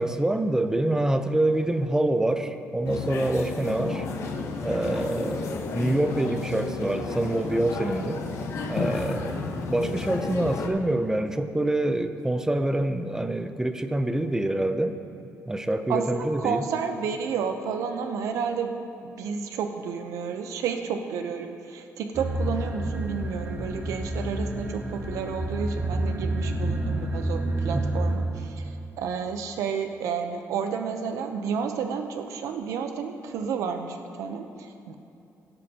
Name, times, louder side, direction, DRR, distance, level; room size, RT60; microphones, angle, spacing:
voice 1, 0.0-4.1 4.6-8.2 8.7-9.4 9.7-15.0 15.5-16.6, right 1 dB, 10° right, 9 dB, 0.6 m, -26 dB
sound 1, 2.8-10.7, left 3 dB, 70° left, 1.2 m, -32 dB
voice 2, 15.9-34.9, right 6 dB, 85° right, 6 dB, 0.7 m, -31 dB
sound 2, 22.1-28.1, right 1 dB, 40° right, 2.0 m, -29 dB
17.0 x 10.5 x 2.9 m, 2.7 s
cardioid pair, 100°, 5 cm